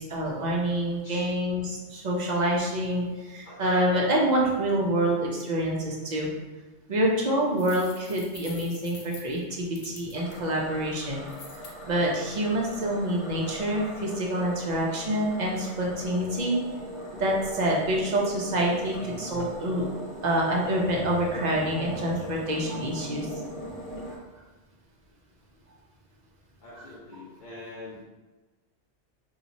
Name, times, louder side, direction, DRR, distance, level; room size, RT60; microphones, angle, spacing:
voice 1, 0.0-6.3 6.9-11.2 11.9-16.6 17.1-19.9 20.2-23.3, right 1 dB, 45° right, -2 dB, 0.7 m, -27 dB
voice 2, 1.0-1.3 3.4-3.6 26.6-28.0, left 2 dB, 50° left, -6 dB, 0.7 m, -44 dB
sound 1, 7.5-10.4 11.3-11.7, left 5 dB, 85° left, 0.9 m, -46 dB
sound 2, 10.2-24.2, right 1 dB, 15° left, 0.5 m, -40 dB
2.9 x 2.4 x 3.9 m, 1.2 s
omnidirectional pair, 1.1 m